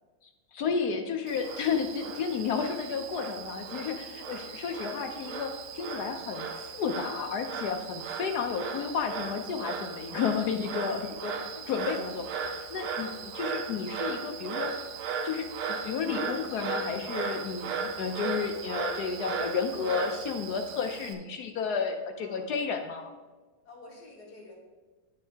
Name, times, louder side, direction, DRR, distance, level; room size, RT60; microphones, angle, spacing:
voice 1, 0.2-11.3 11.7-14.9 15.2-23.1, left 6 dB, 70° left, 5 dB, 0.9 m, -32 dB
Frog, 1.3-21.1, right 5 dB, 80° right, 1.6 m, -36 dB
voice 2, 11.6-12.0 13.1-13.3 22.2-22.5 23.6-24.5, left 2 dB, 55° left, -2 dB, 2.0 m, -51 dB
9.7 x 7.0 x 3.3 m, 1.3 s
omnidirectional pair, 2.2 m